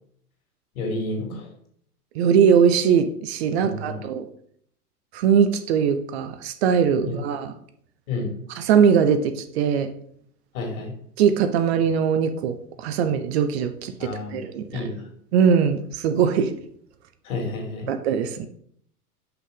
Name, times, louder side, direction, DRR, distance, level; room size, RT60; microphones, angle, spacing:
voice 1, 0.7-1.5 3.6-4.0 7.0-7.2 8.1-8.3 10.5-10.9 14.0-14.4 14.7-15.1 17.2-17.9, left 2 dB, 60° left, 1 dB, 2.6 m, -30 dB
voice 2, 2.2-4.3 5.1-7.5 8.6-9.9 11.2-14.9 15.3-16.5 17.9-18.5, right 7 dB, 45° right, 10 dB, 0.6 m, -21 dB
5.7 x 5.5 x 3.8 m, 0.65 s
figure-of-eight pair, 100°, 47 cm